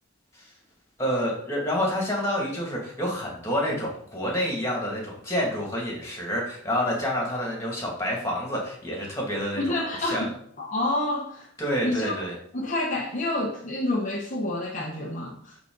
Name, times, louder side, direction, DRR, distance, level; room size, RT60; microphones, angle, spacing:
voice 1, 1.0-10.3 11.6-12.4, equal, 15° left, -2 dB, 2.4 m, -28 dB
voice 2, 9.5-10.3 10.6-11.5 11.8-12.1 12.5-15.6, left 1 dB, 40° left, -2 dB, 1.0 m, -28 dB
10.5 x 4.2 x 4.0 m, 0.65 s
head